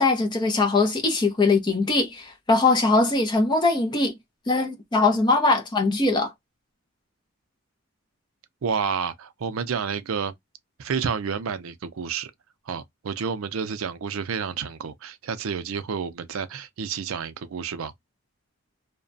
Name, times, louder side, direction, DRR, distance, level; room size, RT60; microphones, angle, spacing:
voice 1, 0.0-4.2 4.5-6.3, left 3 dB, 20° left, 0.6 m, -21 dB
voice 2, 8.6-10.3 10.8-12.3 12.7-17.9, right 6 dB, 75° right, 0.4 m, -30 dB
2.8 x 2.2 x 2.5 m
head